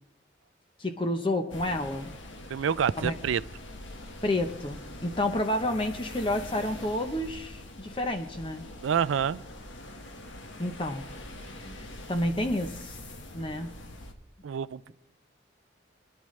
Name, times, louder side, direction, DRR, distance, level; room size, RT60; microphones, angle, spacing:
voice 1, 0.8-2.1 3.0-3.1 4.2-8.6 10.6-11.0 11.5-13.0 13.3-13.7, left 1 dB, 25° left, 0.7 m, -30 dB
sound 1, 1.5-14.1, left 1 dB, 85° left, 1.5 m, -44 dB
voice 2, 2.5-3.4 8.8-9.4 14.4-14.9, right 7 dB, 90° right, 0.4 m, -27 dB
24.0 x 10.5 x 3.2 m
head